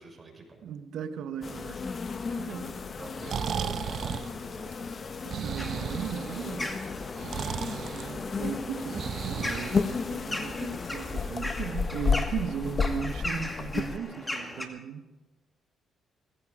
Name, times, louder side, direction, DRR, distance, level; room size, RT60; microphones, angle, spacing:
voice 1, 0.0-0.7 3.0-4.7 7.9-8.1, right 3 dB, 25° right, 6.4 m, -47 dB
voice 2, 0.6-1.9 2.3-3.0 5.2-6.8 7.2-15.0, right 7 dB, 75° right, 1.1 m, -37 dB
sound 1, 1.4-14.0, left 5 dB, 40° left, 0.8 m, -33 dB
Breathing, 3.0-10.4, right 8 dB, 60° right, 0.4 m, -36 dB
sound 2, 5.6-14.7, left 1 dB, 15° left, 2.3 m, -39 dB
18.5 x 16.0 x 4.9 m
cardioid pair, 90°, 0 cm